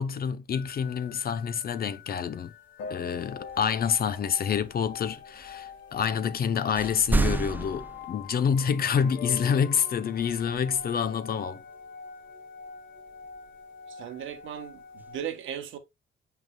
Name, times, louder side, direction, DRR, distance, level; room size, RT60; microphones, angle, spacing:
voice 1, 0.0-2.5 2.9-11.6, left 7 dB, 50° left, 0.7 m, -27 dB
sound 1, 0.5-15.2, left 6 dB, 75° left, 1.3 m, -44 dB
sound 2, 3.5-6.4 6.8-8.9 10.2-11.3 13.1-13.7 14.3-15.1, right 2 dB, 10° right, 0.5 m, -34 dB
voice 2, 13.9-15.8, right 9 dB, 80° right, 1.3 m, -37 dB
7.5 x 5.7 x 2.2 m
cardioid pair, 90°, 20 cm